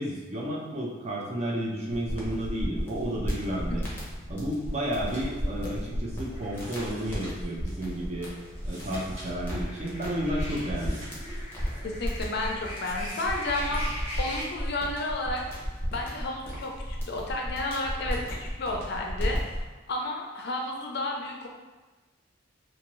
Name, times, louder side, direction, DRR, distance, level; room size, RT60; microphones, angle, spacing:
voice 1, 0.0-3.8 4.3-8.3 8.6-11.0, right 1 dB, 30° right, -3 dB, 0.5 m, -32 dB
sound 1, 1.9-19.7, equal, 10° left, 0.7 m, -34 dB
sound 2, 4.7-14.4, left 1 dB, 5° right, 1.1 m, -42 dB
sound 3, 5.0-5.4 5.7-5.8 6.5-7.5 8.5-9.3 9.5-9.6 10.7-11.8 12.8-13.4, right 1 dB, 65° right, 1.2 m, -48 dB
voice 2, 11.8-15.4 15.9-19.4 19.9-21.5, left 2 dB, 55° left, 0 dB, 0.4 m, -32 dB
2.6 x 2.6 x 3.0 m, 1.2 s
head